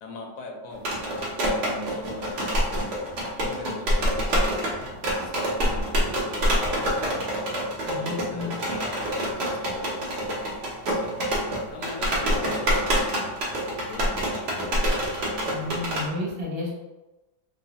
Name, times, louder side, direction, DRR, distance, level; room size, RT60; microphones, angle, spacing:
voice 1, 0.0-7.4 8.0-11.1 11.7-13.4 13.8-15.0, left 3 dB, 75° left, 1 dB, 0.8 m, -40 dB
sound 1, 0.7-16.1, equal, 85° right, 0.5 m, -26 dB
voice 2, 7.8-8.5 15.5-16.7, left 2 dB, 60° right, -3 dB, 1.1 m, -32 dB
3.0 x 2.0 x 2.8 m, 1.1 s
omnidirectional pair, 2.0 m